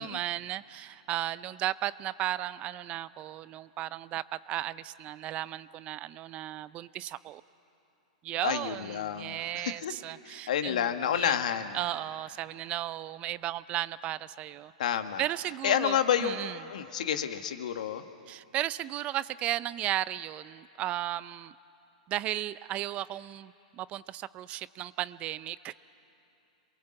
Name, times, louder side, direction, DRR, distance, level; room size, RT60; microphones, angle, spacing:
voice 1, 0.0-7.4 8.2-11.4 11.7-14.7 15.2-16.6 18.3-21.5 22.1-25.7, right 14 dB, 30° right, 18 dB, 0.5 m, -35 dB
voice 2, 8.4-9.9 10.2-11.8 14.8-15.2 15.6-18.0, left 9 dB, 75° left, 8 dB, 1.5 m, -30 dB
28.0 x 22.5 x 7.8 m, 2.8 s
hypercardioid pair, 130°, 4 cm